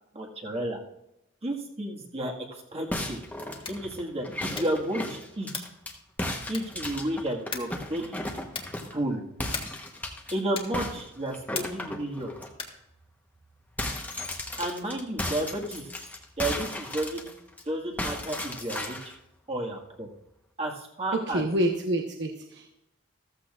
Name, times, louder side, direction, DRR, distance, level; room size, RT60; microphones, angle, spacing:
voice 1, 0.1-0.8 1.4-3.2 3.7-5.6 6.5-8.2 8.9-9.2 10.3-12.3 14.6-15.9 16.4-17.3 17.7-19.0 19.5-20.1 20.6-21.4, right 1 dB, 30° right, 0 dB, 1.9 m, -32 dB
sound 1, 2.9-5.9 6.2-9.0 9.4-10.3 10.7-12.5 12.9-13.0 13.3-17.6 18.0-19.1, left 1 dB, 10° left, 1.1 m, -35 dB
sound 2, 3.5-3.9 4.5-4.9 5.5-5.8 6.5-6.9 7.5-7.8 8.5-8.8 9.5-9.9 10.5-10.9 11.5-11.9 12.5-12.9, left 5 dB, 25° left, 1.5 m, -38 dB
voice 2, 21.1-22.8, right 1 dB, 60° right, 2 dB, 1.1 m, -28 dB
14.0 x 14.0 x 2.5 m, 0.85 s
head